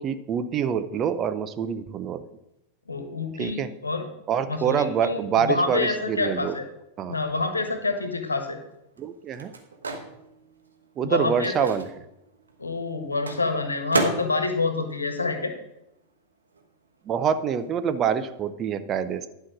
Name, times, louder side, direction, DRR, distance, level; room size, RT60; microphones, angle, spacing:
voice 1, 0.0-2.2 3.4-3.7 4.3-6.5 7.0-7.2 9.0-9.5 11.0-11.8 17.1-19.3, right 8 dB, 30° right, 11 dB, 0.7 m, -26 dB
voice 2, 2.9-4.1 4.5-6.6 7.1-8.6 11.0-11.7 12.6-15.5, left 3 dB, 80° left, 6 dB, 1.4 m, -27 dB
Microwave oven, 8.0-16.1 16.4-18.3, right 3 dB, 75° right, 1.3 m, -35 dB
11.0 x 5.7 x 6.0 m, 0.88 s
figure-of-eight pair, 90°, 0 cm